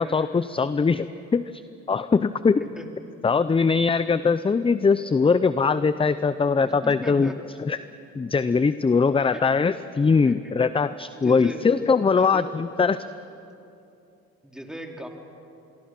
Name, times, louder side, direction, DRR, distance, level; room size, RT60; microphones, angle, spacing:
voice 1, 0.0-1.6 1.9-2.6 3.2-7.3 7.6-7.8 8.2-13.0, left 5 dB, 20° left, 14 dB, 0.5 m, -21 dB
voice 2, 6.6-7.4 9.2-9.4 10.2-10.6 11.2-11.7 12.2-12.5 14.4-15.1, equal, ahead, 2 dB, 2.8 m, -38 dB
26.0 x 22.5 x 6.0 m, 2.7 s
cardioid pair, 90°, 30 cm